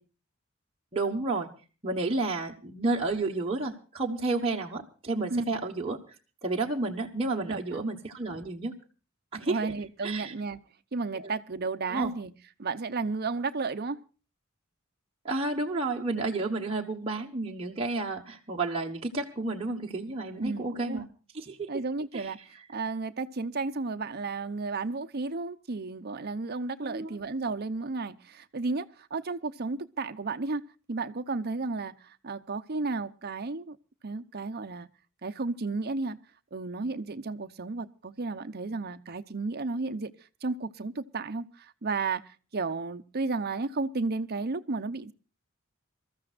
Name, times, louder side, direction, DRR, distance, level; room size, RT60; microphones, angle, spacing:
voice 1, 0.9-1.5 1.8-6.0 6.4-8.7 9.3-9.6 10.0-10.3 11.2-11.3 11.9-12.1 15.2-21.0 21.3-21.7 22.1-22.3 26.8-27.1, right 3 dB, 25° right, 1.2 m, -31 dB
voice 2, 7.5-7.8 9.5-10.6 10.9-12.3 12.6-14.0 20.4-21.1 21.7-22.4 22.7-30.6 30.9-33.8 34.0-34.9 35.2-36.2 36.5-40.1 40.4-45.1, right 3 dB, 50° right, 0.8 m, -33 dB
27.0 x 14.0 x 2.5 m
head